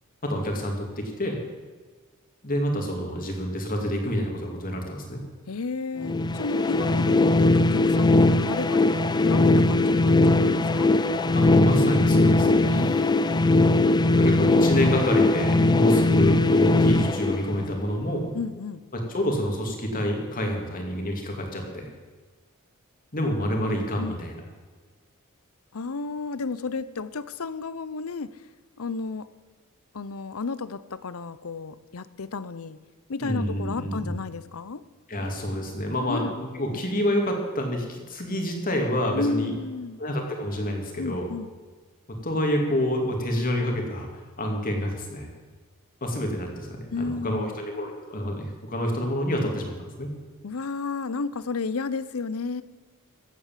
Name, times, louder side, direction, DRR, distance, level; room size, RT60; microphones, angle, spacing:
voice 1, 0.2-1.4 2.4-5.2 11.3-12.8 14.1-18.3 18.9-21.9 23.1-24.3 33.2-34.1 35.1-39.5 40.0-41.3 42.2-44.1 44.4-45.3 46.0-50.1, equal, 40° left, 2 dB, 2.5 m, -28 dB
voice 2, 5.5-10.9 12.6-13.4 18.3-18.8 24.0-24.3 25.7-28.3 28.8-29.3 29.9-32.8 33.1-34.8 36.1-36.4 36.7-37.1 39.1-40.0 41.0-41.5 46.9-47.6 50.4-52.6, left 4 dB, 70° left, 15 dB, 0.7 m, -32 dB
sound 1, 6.0-17.9, left 2 dB, 20° left, 0.5 m, -20 dB
15.0 x 8.5 x 7.4 m, 1.4 s
head